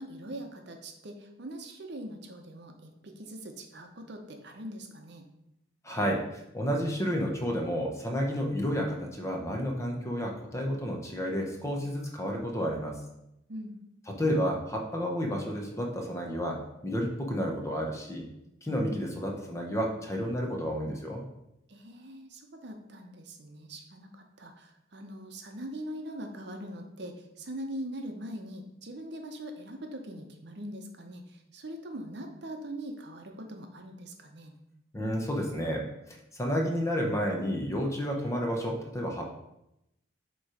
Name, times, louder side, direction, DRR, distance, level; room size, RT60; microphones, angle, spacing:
voice 1, 0.0-5.3 13.5-13.8 21.7-34.5, right 1 dB, 60° right, 4 dB, 0.8 m, -42 dB
voice 2, 5.8-13.0 14.1-18.3 18.6-21.2 34.9-39.4, equal, 15° left, 1 dB, 0.9 m, -31 dB
7.1 x 3.1 x 4.9 m, 0.85 s
head